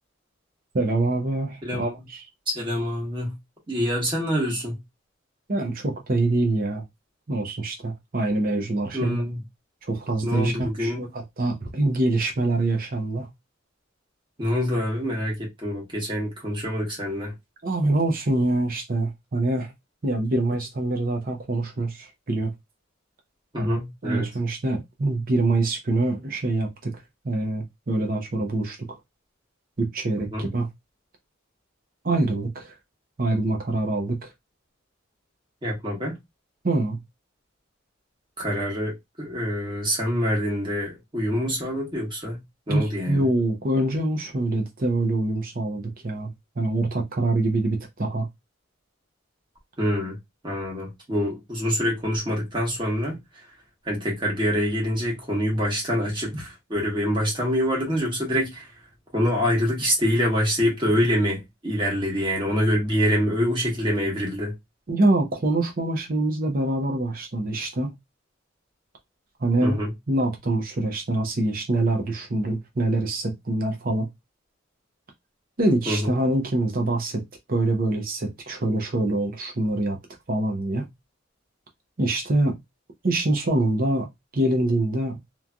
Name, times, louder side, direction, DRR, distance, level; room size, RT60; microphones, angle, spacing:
voice 1, 0.7-2.2 5.5-6.8 7.3-9.2 9.9-13.3 17.6-19.7 20.0-22.5 23.6-28.9 29.8-30.7 32.0-32.7 33.2-34.3 36.6-37.0 42.7-46.3 46.6-48.3 64.9-68.0 69.4-69.8 70.1-74.1 75.6-77.2 77.5-80.0 80.3-80.9 82.0-82.6 83.0-84.1 84.3-85.2, right 2 dB, 45° right, 0.7 m, -25 dB
voice 2, 1.6-1.9 2.5-3.3 3.7-4.8 8.9-9.4 10.2-11.1 14.4-17.3 23.5-24.3 30.3-30.5 35.6-36.2 38.4-42.4 42.7-43.2 49.8-50.2 50.4-53.2 53.8-58.7 59.1-64.5 69.6-69.9 75.9-76.1, equal, 25° right, 1.3 m, -25 dB
3.1 x 2.5 x 2.2 m
head